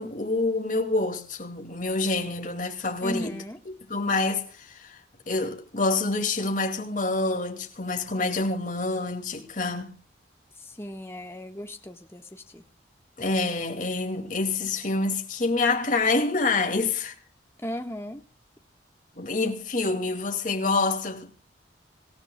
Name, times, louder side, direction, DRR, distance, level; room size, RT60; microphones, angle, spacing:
voice 1, 0.0-3.4 3.9-5.0 5.3-9.9 13.2-17.1 19.2-21.3, left 3 dB, 45° left, 2.4 m, -27 dB
voice 2, 3.0-3.6 10.6-12.6 17.6-18.2, equal, 15° left, 1.4 m, -36 dB
25.5 x 15.0 x 2.3 m
head